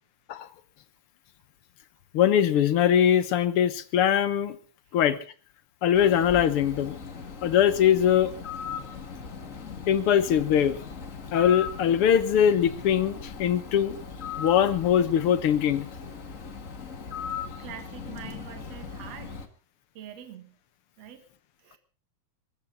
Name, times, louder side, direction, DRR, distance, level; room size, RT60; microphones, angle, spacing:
voice 1, 2.1-4.6 4.9-5.2 5.8-7.0 7.4-8.3 9.9-10.8 11.3-14.0 14.4-15.9, left 9 dB, 60° left, 1.7 m, -22 dB
Bird, 5.9-19.5, left 6 dB, 35° left, 1.4 m, -39 dB
voice 2, 17.6-19.4 19.9-20.5 21.0-21.2 21.6-21.8, right 9 dB, 65° right, 2.9 m, -44 dB
23.5 x 14.5 x 4.1 m
omnidirectional pair, 3.3 m